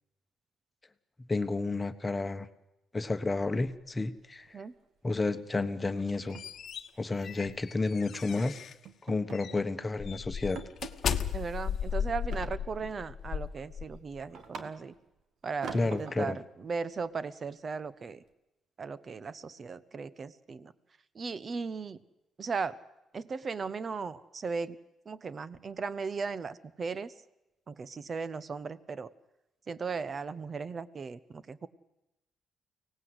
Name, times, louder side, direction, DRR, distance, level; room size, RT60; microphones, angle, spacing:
voice 1, 1.3-2.5 2.9-4.6 5.0-6.4 7.0-8.6 9.0-10.6 15.7-16.4, left 3 dB, 20° left, 10 dB, 1.3 m, -31 dB
sound 1, 3.4-4.2 4.5-4.7 5.0-5.3 5.5-5.6 6.0-7.6 8.1-8.4 8.9-9.8 10.1-10.2 10.6-11.3 12.3-13.0 13.5-15.1 15.6-16.4, right 5 dB, 65° right, 1.8 m, -46 dB
sound 2, 5.9-8.8 9.3-9.6 10.0-14.2, left 8 dB, 60° left, 1.1 m, -36 dB
voice 2, 11.3-14.9 15.4-18.2 18.8-20.7 21.1-22.0 22.4-22.8 23.1-24.8 25.1-27.1 27.7-29.1 29.7-31.7, right 5 dB, 40° right, 17 dB, 1.0 m, -37 dB
24.5 x 18.0 x 8.0 m, 0.93 s
cardioid pair, 90°, 0 cm